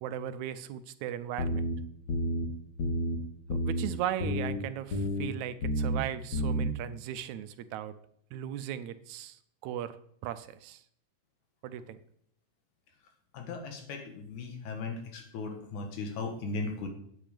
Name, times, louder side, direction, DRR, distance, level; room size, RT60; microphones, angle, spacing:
voice 1, 0.0-1.7 3.5-7.9 8.3-10.0 10.2-10.8 11.6-12.0, right 11 dB, 80° right, 11 dB, 2.0 m, -37 dB
sound 1, 1.4-1.7 2.1-2.4 2.8-3.1 3.5-3.9 4.2-4.6 4.9-5.3 5.6-6.0 6.3-6.7, equal, 45° left, 1.5 m, -30 dB
voice 2, 13.3-16.9, left 3 dB, 85° left, 5 dB, 3.0 m, -37 dB
9.0 x 8.7 x 5.1 m, 0.67 s
omnidirectional pair, 3.4 m